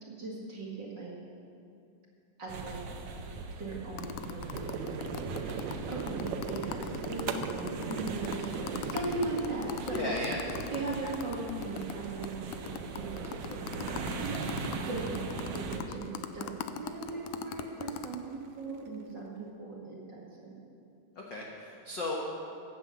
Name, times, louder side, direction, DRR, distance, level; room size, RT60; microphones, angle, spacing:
voice 1, 0.0-1.1 2.4-2.8 3.6-10.1 10.7-12.7 13.0-14.5 14.8-16.5 16.8-20.5, right 3 dB, 35° right, -4 dB, 2.2 m, -39 dB
sound 1, 2.5-15.8, right 4 dB, 65° right, 2.1 m, -41 dB
sound 2, 4.0-11.9 12.2-12.3 12.5-18.2, left 11 dB, 80° left, 1.8 m, -40 dB
sound 3, 4.5-19.0, right 6 dB, 85° right, 2.4 m, -41 dB
voice 2, 9.9-10.6 21.1-22.2, left 2 dB, 55° left, -2 dB, 1.3 m, -35 dB
15.5 x 9.3 x 7.0 m, 2.5 s
omnidirectional pair, 3.9 m